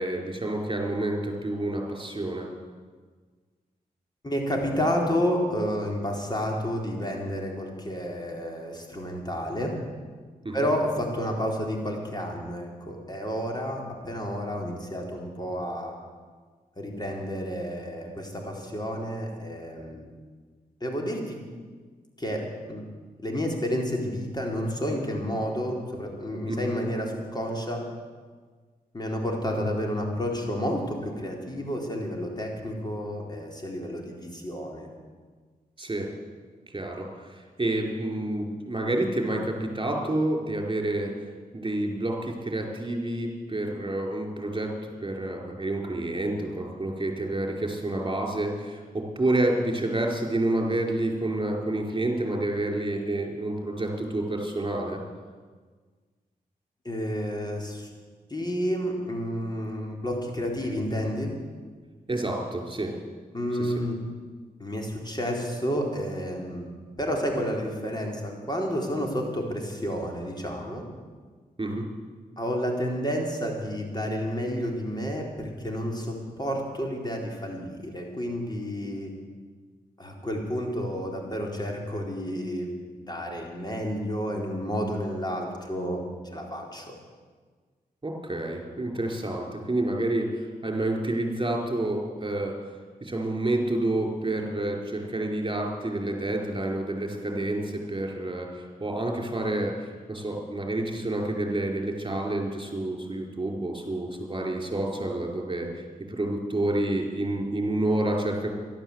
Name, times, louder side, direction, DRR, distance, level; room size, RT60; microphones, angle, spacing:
voice 1, 0.0-2.5 10.4-10.6 26.5-26.7 35.8-36.1 36.7-41.1 41.5-55.0 62.1-62.9 63.6-63.7 71.6-71.9 88.0-92.5 93.0-108.5, right 1 dB, 30° right, 1 dB, 4.7 m, -29 dB
voice 2, 4.2-9.7 10.5-16.0 16.8-20.1 20.8-21.4 22.2-22.8 23.2-27.9 28.9-34.9 56.8-57.9 58.3-61.3 63.3-64.0 64.6-70.9 72.4-79.1 80.0-86.0 86.3-86.9, equal, 25° left, 0 dB, 4.2 m, -30 dB
12.0 x 12.0 x 8.1 m, 1.5 s
supercardioid pair, 45°, 17 cm